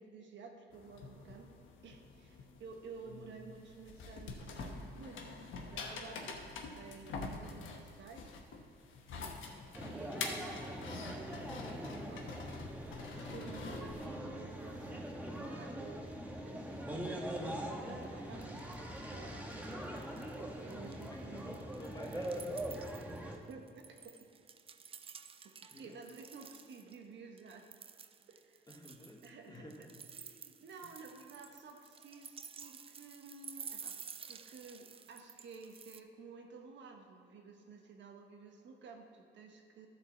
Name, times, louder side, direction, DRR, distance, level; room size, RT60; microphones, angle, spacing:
voice 1, 0.0-1.6 1.8-8.4 9.7-12.3 13.1-16.1 16.4-19.4 20.3-21.5 23.5-24.3 25.7-27.7 28.3-28.7 29.2-34.0 34.3-39.9, right 4 dB, 65° right, 3 dB, 1.1 m, -53 dB
sound 1, 0.7-14.1, left 4 dB, 80° left, 1.1 m, -46 dB
voice 2, 9.1-9.5 21.1-22.5 25.7-26.0 28.7-30.0 30.8-30.9, left 1 dB, 20° left, 2 dB, 1.2 m, -52 dB
sound 2, 9.7-23.4, right 1 dB, 5° right, 1.2 m, -42 dB
sound 3, 18.0-18.1 18.4-19.0 19.3-20.4 20.7-27.0 27.4-36.0, right 6 dB, 30° right, 0.4 m, -52 dB
11.0 x 4.5 x 7.1 m, 2.4 s
cardioid pair, 90°, 20 cm